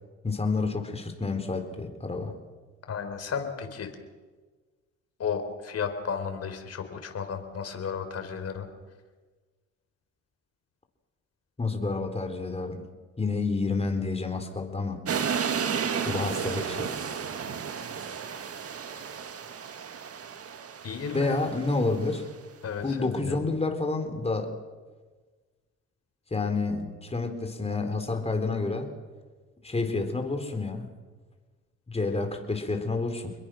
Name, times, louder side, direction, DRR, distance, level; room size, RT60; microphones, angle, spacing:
voice 1, 0.2-2.3 11.6-12.8 13.2-15.0 16.1-16.9 21.1-22.3 22.8-24.5 26.3-28.9 29.6-30.9 31.9-33.3, left 3 dB, 20° left, 6 dB, 4.2 m, -29 dB
voice 2, 2.9-3.9 5.2-8.7 20.8-21.4 22.6-23.5, left 6 dB, 55° left, 7 dB, 4.2 m, -33 dB
sound 1, 15.1-22.2, right 7 dB, 50° right, 2.0 m, -33 dB
28.5 x 21.5 x 6.5 m, 1.3 s
cardioid pair, 90°, 30 cm